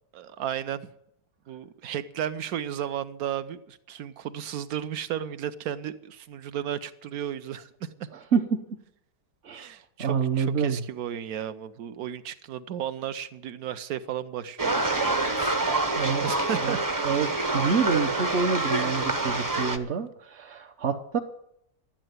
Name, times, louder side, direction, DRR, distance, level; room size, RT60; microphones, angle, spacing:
voice 1, 0.1-0.9 1.5-8.1 9.5-15.6 16.2-16.8, right 10 dB, 70° right, 1.3 m, -34 dB
voice 2, 8.1-8.6 9.4-9.7 10.0-10.8 15.9-16.3 16.5-16.8 17.0-21.2, right 6 dB, 50° right, 1.0 m, -27 dB
sound 1, 14.6-19.8, right 2 dB, 15° right, 0.7 m, -26 dB
12.5 x 9.0 x 9.4 m
omnidirectional pair, 1.7 m